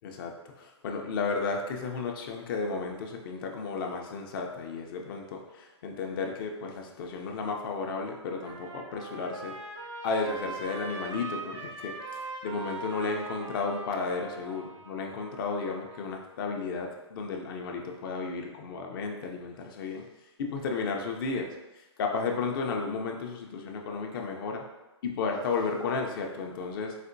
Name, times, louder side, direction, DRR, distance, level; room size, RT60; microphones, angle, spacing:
voice 1, 0.0-9.6 10.0-20.0 20.4-21.5 21.8-24.6 25.0-27.0, left 4 dB, 50° left, 2 dB, 0.5 m, -33 dB
Trumpet, 7.7-16.1, right 3 dB, 90° right, 0.6 m, -42 dB
4.1 x 2.1 x 2.6 m, 1.1 s
hypercardioid pair, 135°, 15 cm